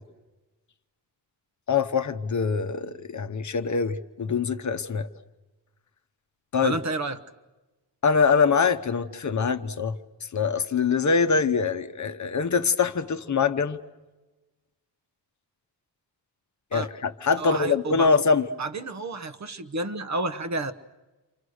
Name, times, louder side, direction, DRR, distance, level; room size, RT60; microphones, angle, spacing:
voice 1, 1.7-5.1 6.5-6.8 8.0-10.0 10.3-13.8 16.7-18.5, left 5 dB, 40° left, 9 dB, 1.0 m, -24 dB
voice 2, 6.6-7.2 16.7-16.9 17.4-18.1 18.6-20.7, right 2 dB, 40° right, 9 dB, 1.1 m, -30 dB
29.0 x 25.5 x 6.5 m, 1.2 s
wide cardioid pair, 155°, 42 cm